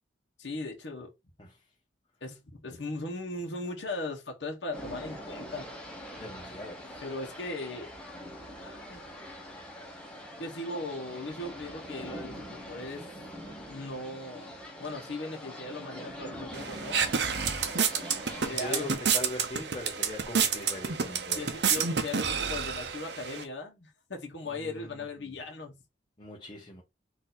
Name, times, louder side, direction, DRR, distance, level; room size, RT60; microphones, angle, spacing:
voice 1, 0.4-1.1 2.2-5.7 7.0-7.9 8.6-9.0 10.4-13.1 13.7-17.0 18.4-18.9 21.3-25.8, left 2 dB, 85° left, 1.1 m, -38 dB
sound 1, 4.7-18.9, equal, 5° left, 1.2 m, -43 dB
voice 2, 6.1-7.0 18.5-21.5 24.5-24.9 25.2-25.3 26.2-26.8, left 2 dB, 25° left, 0.8 m, -41 dB
sound 2, 16.5-23.4, right 6 dB, 65° right, 0.7 m, -29 dB
4.2 x 2.7 x 4.0 m
head